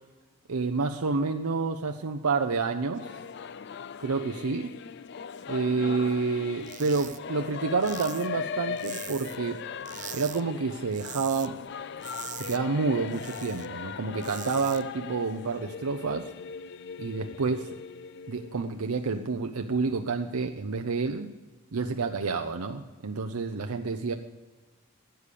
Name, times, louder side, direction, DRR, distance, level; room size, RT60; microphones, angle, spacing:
voice 1, 0.5-3.0 4.0-4.7 5.5-9.6 10.1-11.6 12.4-16.3 17.0-17.8 18.3-21.3 21.7-24.1, right 4 dB, 90° right, 5 dB, 0.7 m, -29 dB
Singing / Musical instrument, 2.9-19.3, left 6 dB, 50° left, 0.4 m, -39 dB
sound 1, 6.6-7.2 7.5-9.5 9.8-10.4 10.7-11.5 11.8-13.7 14.0-14.8, right 11 dB, 35° right, 0.5 m, -42 dB
12.5 x 8.4 x 6.6 m, 1.3 s
head